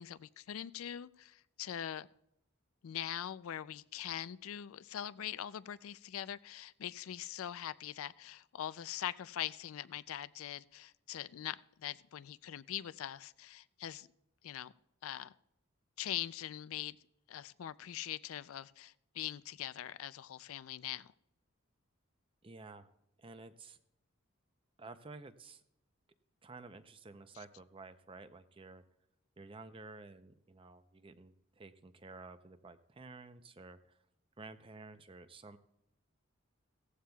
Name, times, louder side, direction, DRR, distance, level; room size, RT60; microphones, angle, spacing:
voice 1, 0.0-2.1 2.8-14.1 14.4-14.7 15.0-15.3 16.0-17.0 17.3-21.1, left 11 dB, 80° left, 0.4 m, -42 dB
voice 2, 22.4-22.9 23.2-23.8 24.8-25.6 26.4-28.8 29.4-33.8 34.4-35.6, right 3 dB, 25° right, 0.6 m, -52 dB
17.0 x 14.5 x 2.3 m
head